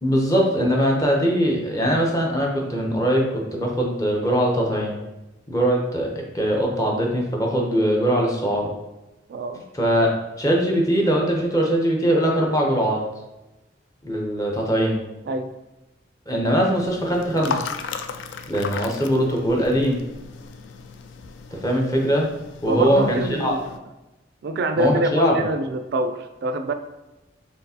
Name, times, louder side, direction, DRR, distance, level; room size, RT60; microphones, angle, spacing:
voice 1, 0.0-5.0 5.5-8.7 9.7-13.0 14.0-15.0 16.3-17.7 18.5-20.0 21.5-22.3 22.6-23.5 24.8-25.4, equal, 20° left, -1 dB, 0.7 m, -21 dB
voice 2, 9.3-9.6 15.3-15.5 22.7-23.7 24.4-26.7, right 2 dB, 60° right, 8 dB, 0.3 m, -25 dB
sound 1, 16.7-23.8, left 6 dB, 75° left, 0.3 m, -36 dB
4.3 x 3.5 x 2.8 m, 1.0 s
head